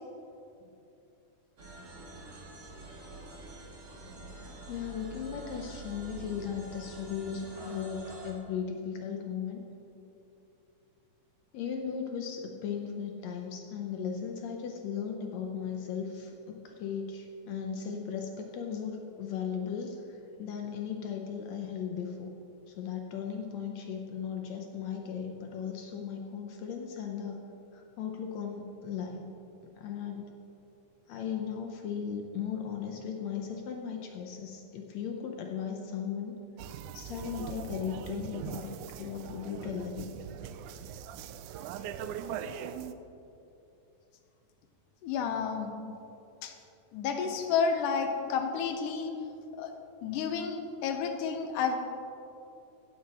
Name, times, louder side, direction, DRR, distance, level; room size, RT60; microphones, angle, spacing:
sound 1, 1.6-8.3, right 1 dB, 40° right, 1.9 m, -46 dB
voice 1, 4.7-9.6 11.5-20.0 20.4-22.3 22.7-27.4 27.7-29.3 29.8-30.3 31.1-36.4 36.9-40.1, left 7 dB, 70° left, 2 dB, 1.8 m, -37 dB
sound 2, 36.6-42.9, right 9 dB, 80° right, 1.9 m, -41 dB
voice 2, 45.0-45.7 46.4-46.5 46.9-49.1 49.6-49.7 50.0-51.8, left 6 dB, 85° left, 5 dB, 2.5 m, -30 dB
16.0 x 7.5 x 4.2 m, 2.8 s
omnidirectional pair, 3.7 m